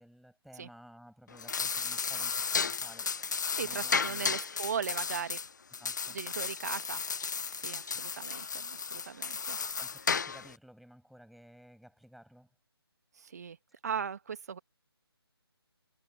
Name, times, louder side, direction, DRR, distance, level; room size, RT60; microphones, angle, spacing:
voice 1, 0.0-3.1 3.6-4.4 5.8-6.2 7.6-8.0 9.8-12.5, equal, ahead, 5.9 m, -55 dB
sound 1, 1.3-10.6, left 5 dB, 45° left, 0.5 m, -34 dB
voice 2, 3.5-5.4 6.1-7.0 7.5-9.6 13.1-13.6 13.8-14.6, right 7 dB, 40° right, 1.7 m, -38 dB
figure-of-eight pair, 150°, 13 cm